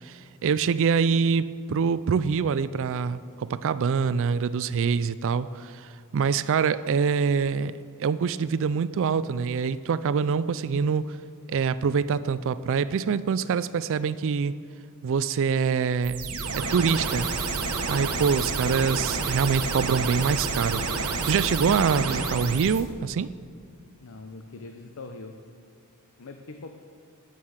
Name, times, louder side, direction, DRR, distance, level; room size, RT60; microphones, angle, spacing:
voice 1, 0.0-11.1 11.5-14.6 15.0-16.3 16.5-17.3 17.9-23.3, right 6 dB, 60° right, 15 dB, 0.4 m, -25 dB
sound 1, 16.0-22.8, right 4 dB, 85° right, 1.3 m, -29 dB
voice 2, 16.9-17.2 24.0-25.4 26.2-26.7, left 3 dB, 65° left, 5 dB, 0.7 m, -42 dB
13.0 x 9.2 x 6.5 m, 2.2 s
head